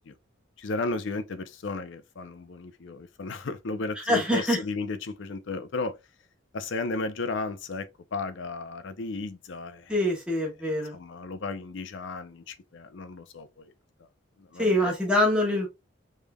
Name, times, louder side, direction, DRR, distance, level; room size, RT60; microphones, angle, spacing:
voice 1, 0.6-6.0 6.5-9.9 10.6-13.7 14.4-14.9, left 3 dB, 60° left, 0.5 m, -34 dB
voice 2, 4.0-4.6 9.9-11.0 14.6-15.7, left 1 dB, 5° right, 1.2 m, -24 dB
3.6 x 3.2 x 2.2 m
head